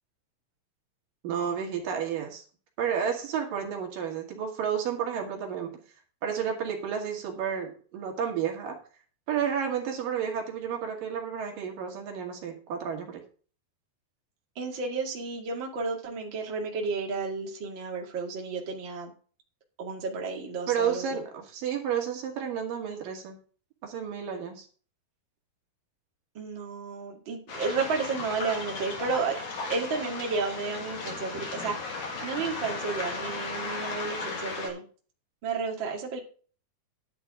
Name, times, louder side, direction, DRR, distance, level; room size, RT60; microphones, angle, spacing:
voice 1, 1.2-2.4 2.8-5.8 6.2-8.8 9.3-13.2 20.7-23.4 23.8-24.7, right 8 dB, 75° right, 2 dB, 3.6 m, -31 dB
voice 2, 14.6-19.1 19.8-21.2 26.3-29.4 29.7-34.8 35.4-36.2, right 4 dB, 35° right, 0 dB, 2.7 m, -32 dB
Waves surf, 27.5-34.7, left 3 dB, 60° left, 4.4 m, -36 dB
11.0 x 10.0 x 3.7 m, 0.40 s
omnidirectional pair, 4.1 m